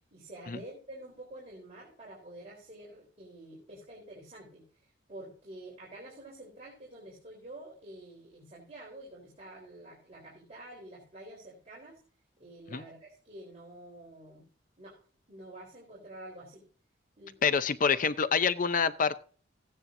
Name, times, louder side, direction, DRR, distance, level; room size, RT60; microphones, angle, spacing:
voice 1, 0.1-12.0 12.4-14.5 14.8-14.9 15.3-16.7 17.2-17.5, right 1 dB, 35° right, -4 dB, 3.9 m, -48 dB
voice 2, 17.4-19.2, left 6 dB, 45° left, 13 dB, 0.5 m, -26 dB
15.5 x 9.9 x 2.7 m, 0.43 s
head